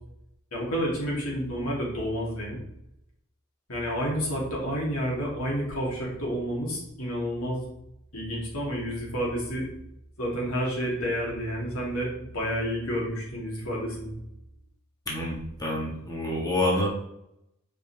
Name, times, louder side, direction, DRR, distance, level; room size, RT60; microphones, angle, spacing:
voice 1, 0.5-2.6 3.7-7.6 8.1-9.7 10.2-14.1, equal, 90° left, -3 dB, 2.9 m, -30 dB
voice 2, 15.1-16.9, left 1 dB, 20° left, -3 dB, 1.6 m, -27 dB
7.5 x 5.2 x 3.4 m, 0.80 s
head